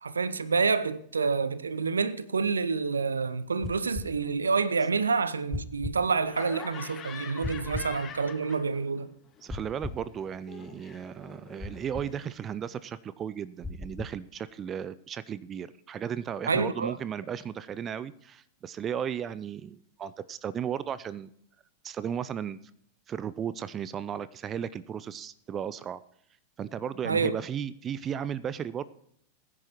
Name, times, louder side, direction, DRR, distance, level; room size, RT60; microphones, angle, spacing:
voice 1, 0.0-9.1 16.5-17.0 27.0-27.3, right 4 dB, 75° right, 0.6 m, -28 dB
sound 1, 3.6-4.1 5.5-6.0 7.4-7.9 9.5-10.0 11.6-12.1 13.6-14.2, left 3 dB, 10° left, 0.9 m, -37 dB
Laughter, 6.3-9.0 9.3-12.2, left 7 dB, 25° left, 1.7 m, -45 dB
voice 2, 9.4-21.3 21.8-22.6 23.1-26.0 26.6-28.8, right 8 dB, 25° right, 0.4 m, -35 dB
21.0 x 9.9 x 3.0 m
figure-of-eight pair, 90°, 0 cm